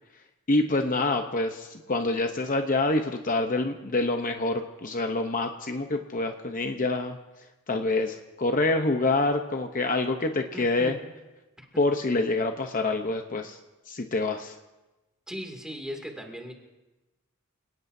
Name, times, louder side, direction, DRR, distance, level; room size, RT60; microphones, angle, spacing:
voice 1, 0.5-7.2 7.7-11.0 11.8-13.6 13.9-14.6, left 2 dB, 40° left, 5 dB, 0.8 m, -26 dB
voice 2, 10.5-10.9 11.7-11.8 15.3-16.5, equal, 5° right, 1 dB, 2.5 m, -38 dB
27.5 x 18.5 x 2.7 m, 1.1 s
head